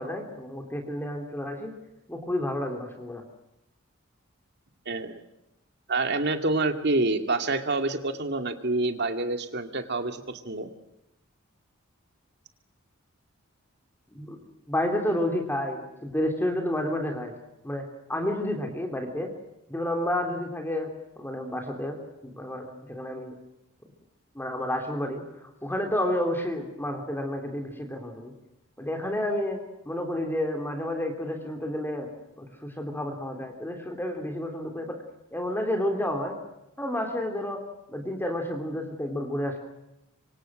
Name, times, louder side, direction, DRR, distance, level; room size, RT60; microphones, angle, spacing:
voice 1, 0.0-1.7 2.1-3.2 14.1-14.4 14.7-17.4 17.6-19.3 19.7-20.9 21.2-23.3 24.3-28.3 28.8-29.6 29.8-32.1 32.4-35.0 35.3-36.4 36.8-37.6 37.9-39.6, left 1 dB, 10° left, 4 dB, 3.4 m, -30 dB
voice 2, 4.9-5.2 5.9-10.7, right 2 dB, 50° right, 7 dB, 2.3 m, -27 dB
26.0 x 25.5 x 6.4 m, 0.87 s
head